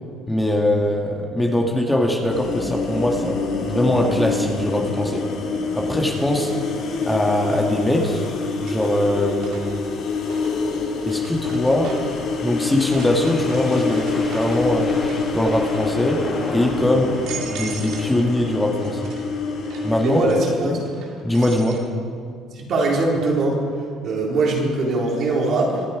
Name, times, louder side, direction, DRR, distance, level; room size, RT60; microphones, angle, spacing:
voice 1, 0.3-3.4 3.7-5.3 5.7-6.5 7.1-8.2 8.6-9.6 11.1-11.9 12.4-15.0 15.3-16.2 16.5-17.1 17.5-19.1 19.8-20.2 20.6-20.8 21.2-21.8, left 1 dB, 10° left, 0 dB, 1.9 m, -21 dB
sound 1, 2.3-20.3, left 4 dB, 60° left, 2.6 m, -26 dB
sound 2, 5.8-5.9 7.6-8.1 8.4-12.2 12.7-15.3 15.6-16.1 16.7-16.8 17.1-18.2 18.5-21.8, right 5 dB, 70° right, 2.4 m, -40 dB
sound 3, 9.8-18.4, left 2 dB, 30° left, 3.3 m, -36 dB
voice 2, 20.0-20.8 22.5-23.6 24.0-25.8, right 2 dB, 55° right, -2 dB, 3.7 m, -21 dB
24.5 x 8.9 x 4.9 m, 2.2 s
cardioid pair, 100°, 0 cm